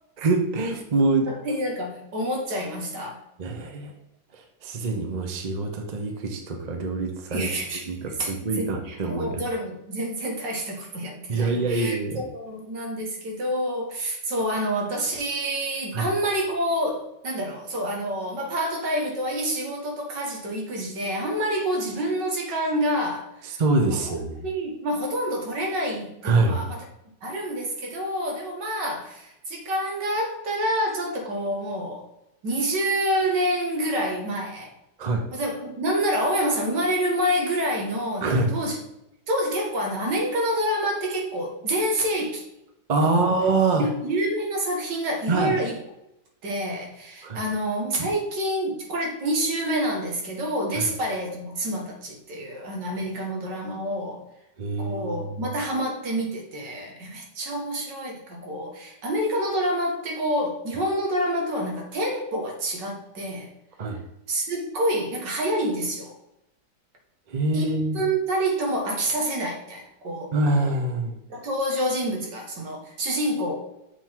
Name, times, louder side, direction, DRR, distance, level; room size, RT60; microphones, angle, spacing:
voice 1, 0.2-1.3 3.4-3.9 4.6-7.5 7.9-8.0 8.3-9.4 11.3-12.2 15.9-16.1 23.6-24.4 26.2-26.6 35.0-35.2 38.2-38.5 42.9-43.8 45.3-45.6 47.2-47.4 48.0-48.1 50.8-50.9 54.6-55.5 63.8-64.0 67.3-68.0 70.3-71.1, right 3 dB, 35° right, 3 dB, 0.8 m, -24 dB
voice 2, 1.3-3.2 7.3-23.6 23.9-26.9 27.2-32.0 32.4-34.7 35.3-38.8 39.3-42.5 43.0-43.4 43.8-45.8 46.4-54.2 54.8-63.5 64.3-66.2 67.5-70.3 71.3-73.6, right 1 dB, 80° right, 0 dB, 2.1 m, -27 dB
7.0 x 3.9 x 4.5 m, 0.84 s
omnidirectional pair, 1.9 m